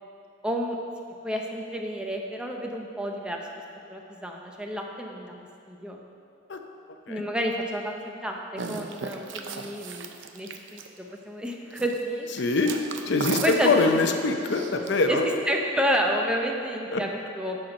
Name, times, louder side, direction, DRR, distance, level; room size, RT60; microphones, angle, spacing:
voice 1, 0.4-0.8 1.2-3.6 3.9-5.3 5.7-6.0 7.1-10.1 10.3-12.3 13.4-13.7 15.0-15.2 15.5-17.6, equal, 5° right, 1 dB, 0.6 m, -30 dB
sound 1, 8.6-11.1 11.7-12.0 12.3-14.9, right 5 dB, 70° right, 0.6 m, -36 dB
voice 2, 12.4-12.8 13.1-15.3 16.9-17.0, left 3 dB, 60° left, 5 dB, 0.6 m, -23 dB
12.5 x 4.4 x 5.3 m, 2.6 s
head